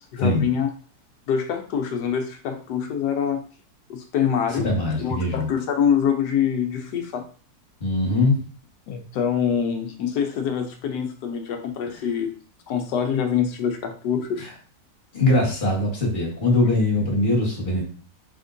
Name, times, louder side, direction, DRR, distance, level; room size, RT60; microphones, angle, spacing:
voice 1, 0.1-0.7 1.3-3.4 3.9-4.7 5.0-7.2 8.9-12.3 12.7-14.5, left 7 dB, 70° left, 5 dB, 1.2 m, -25 dB
voice 2, 4.6-5.5 7.8-8.4 11.9-12.0 14.4-14.5 15.1-17.8, left 2 dB, 30° left, -3 dB, 1.4 m, -21 dB
4.3 x 3.5 x 2.6 m, 0.40 s
omnidirectional pair, 1.9 m